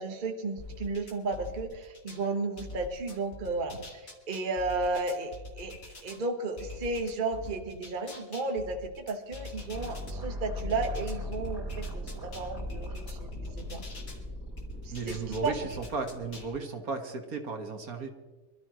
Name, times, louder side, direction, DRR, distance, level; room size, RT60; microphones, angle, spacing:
voice 1, 0.0-5.7 6.0-12.0 12.3-13.3 13.6-13.8 14.8-15.5, right 3 dB, 30° right, 4 dB, 1.3 m, -33 dB
sound 1, 0.6-2.2 2.6-6.2 6.6-10.1 10.6-14.2 14.6-16.5, left 2 dB, 50° left, 2.6 m, -44 dB
sound 2, 9.7-16.6, left 1 dB, 5° right, 4.4 m, -39 dB
voice 2, 14.9-18.1, right 4 dB, 55° right, 5 dB, 1.9 m, -35 dB
25.0 x 13.5 x 3.1 m, 1.3 s
omnidirectional pair, 1.8 m